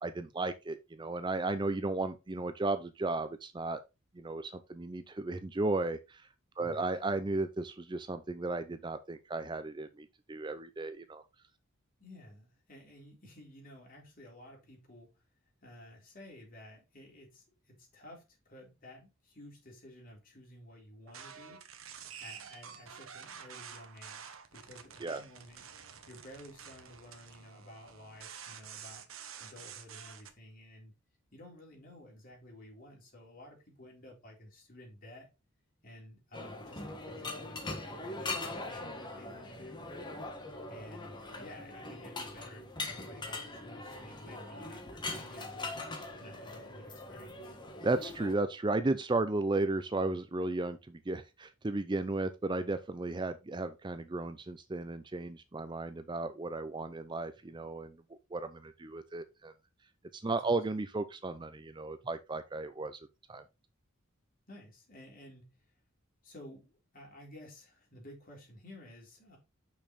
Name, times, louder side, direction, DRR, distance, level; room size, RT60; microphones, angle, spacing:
voice 1, 0.0-3.8 4.1-6.3 6.6-11.2 25.0-25.2 47.8-59.5 60.1-63.0 63.3-63.4, right 2 dB, 20° right, 0.5 m, -34 dB
voice 2, 6.6-6.9 12.0-15.1 15.6-21.6 22.2-25.6 26.1-29.1 29.4-30.9 31.3-35.3 35.8-39.9 40.7-45.8 46.2-47.6 60.3-60.6 64.5-65.6 66.2-69.4, left 1 dB, 45° left, 3.8 m, -53 dB
sound 1, 21.1-30.3, right 7 dB, 85° right, 1.2 m, -49 dB
sound 2, 36.3-48.3, left 2 dB, 20° left, 1.4 m, -42 dB
6.5 x 6.0 x 4.1 m
head